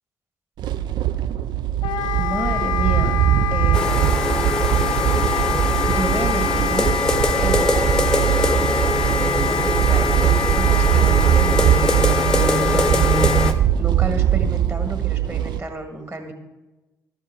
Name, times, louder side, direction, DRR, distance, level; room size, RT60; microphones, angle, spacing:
sound 1, 0.6-15.6, right 11 dB, 55° right, 0.4 m, -21 dB
Wind instrument woodwind instrument, 1.8-13.5, left 11 dB, 60° left, 0.4 m, -26 dB
voice 1, 2.2-3.2 3.5-4.5 5.9-6.9 7.4-8.4 9.2-12.9 13.2-16.3, right 2 dB, 25° right, 4 dB, 1.6 m, -31 dB
sound 2, 3.7-13.5, left 1 dB, 5° left, 0.8 m, -23 dB
13.0 x 4.5 x 4.9 m, 1.1 s
figure-of-eight pair, 40°, 9 cm